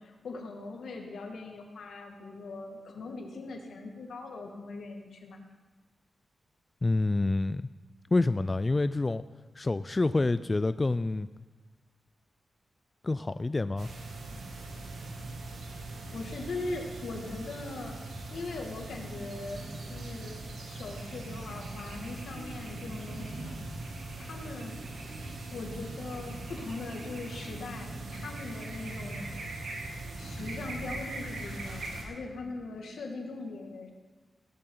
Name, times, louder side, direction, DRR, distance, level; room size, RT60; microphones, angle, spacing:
voice 1, 0.0-5.4 16.1-18.0 18.3-20.4 20.7-23.6 24.2-24.8 25.5-29.3 30.2-33.9, left 3 dB, 85° left, 2 dB, 2.1 m, -40 dB
voice 2, 6.8-7.7 8.1-9.2 9.6-11.3 13.0-13.9, left 2 dB, 30° left, 13 dB, 0.3 m, -27 dB
sound 1, 13.8-32.0, right 2 dB, 90° right, 2.3 m, -40 dB
17.5 x 12.0 x 3.9 m, 1.3 s
wide cardioid pair, 90°, 0 cm